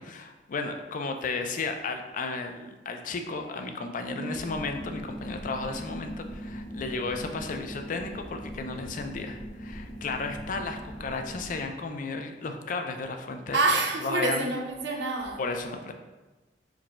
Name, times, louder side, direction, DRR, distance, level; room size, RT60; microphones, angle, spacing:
voice 1, 0.0-13.6 14.0-14.5 15.4-15.9, left 3 dB, 50° left, 5 dB, 0.4 m, -34 dB
voice 2, 4.1-4.4 13.5-15.4, right 3 dB, 90° right, 1 dB, 0.7 m, -27 dB
sound 1, 4.3-11.6, equal, 80° left, 1.0 m, -40 dB
4.8 x 2.2 x 4.2 m, 1.2 s
head